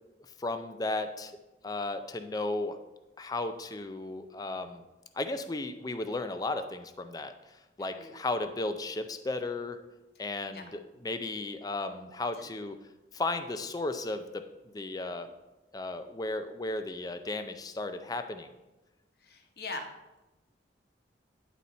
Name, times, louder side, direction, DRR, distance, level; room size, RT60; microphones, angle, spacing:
voice 1, 0.4-1.3 1.6-2.8 3.2-4.8 5.1-7.3 7.8-9.8 10.2-12.8 13.1-14.4 14.7-15.3 15.7-18.5, left 2 dB, 20° left, 8 dB, 0.4 m, -34 dB
voice 2, 7.8-8.2 10.2-10.7 19.2-19.9, left 3 dB, 60° left, 4 dB, 1.0 m, -42 dB
9.9 x 4.2 x 4.2 m, 1.0 s
head